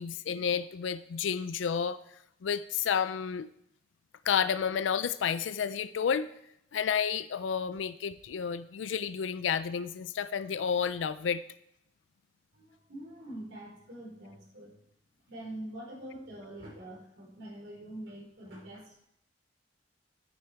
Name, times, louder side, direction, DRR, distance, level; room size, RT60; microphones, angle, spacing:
voice 1, 0.0-2.0 2.4-3.5 4.2-6.3 6.7-11.4, left 7 dB, 85° left, 13 dB, 0.4 m, -31 dB
voice 2, 12.5-14.7 15.3-19.0, right 1 dB, 75° right, -2 dB, 4.3 m, -44 dB
9.7 x 9.4 x 4.5 m, 0.77 s
head